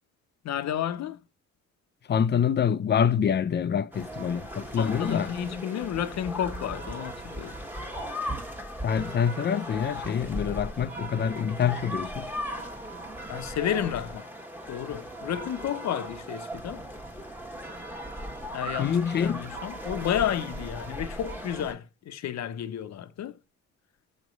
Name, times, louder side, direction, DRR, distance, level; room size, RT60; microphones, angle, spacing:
voice 1, 0.4-1.2 4.8-7.5 13.3-14.3 14.7-16.9 18.5-23.4, left 10 dB, 60° left, 0.8 m, -31 dB
voice 2, 2.1-5.3 8.8-12.3 18.8-19.4, left 7 dB, 35° left, 0.5 m, -26 dB
sound 1, 3.9-21.7, equal, 5° right, 1.2 m, -38 dB
6.6 x 3.1 x 5.2 m
cardioid pair, 90°, 30 cm